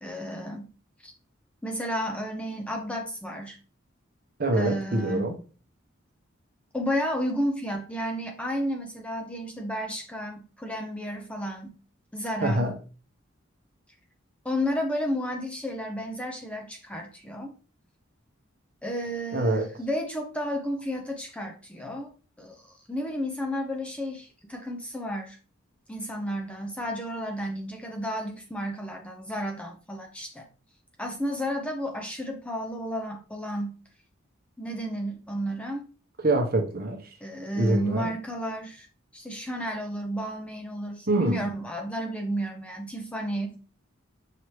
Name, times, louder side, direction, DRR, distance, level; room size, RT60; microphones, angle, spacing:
voice 1, 0.0-0.7 1.0-1.1 1.6-3.6 4.5-5.3 6.7-11.8 12.1-12.7 14.4-17.5 18.8-22.1 22.4-25.4 25.9-30.4 31.0-33.8 34.6-35.9 37.2-38.9 39.1-43.6, equal, 5° left, 0.5 m, -32 dB
voice 2, 4.4-5.3 12.4-12.7 19.3-19.7 36.2-37.1 37.5-38.1 41.1-41.4, right 2 dB, 45° right, 0.9 m, -25 dB
5.7 x 2.8 x 3.1 m
head